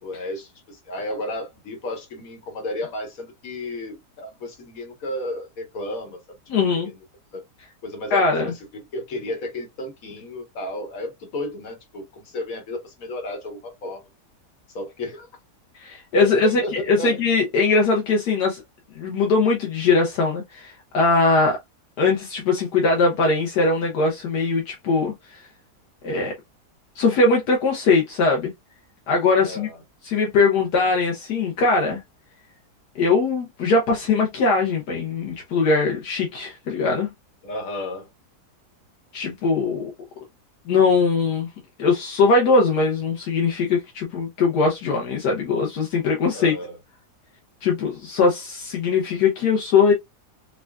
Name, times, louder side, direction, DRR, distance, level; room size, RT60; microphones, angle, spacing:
voice 1, 0.0-6.4 6.7-7.0 7.3-7.4 7.8-8.5 8.9-14.0 14.7-15.3 16.4-17.2 29.4-29.8 37.4-38.1 46.3-46.8, left 1 dB, 60° left, 1.6 m, -33 dB
voice 2, 6.5-6.9 8.1-8.5 15.8-16.6 16.9-18.6 19.0-21.6 22.0-25.4 26.0-26.3 27.0-28.5 29.1-29.7 30.0-32.0 33.0-37.1 39.1-39.9 40.7-41.5 41.8-46.5 47.6-49.9, left 4 dB, 85° left, 1.5 m, -21 dB
4.7 x 2.5 x 2.3 m
omnidirectional pair, 1.7 m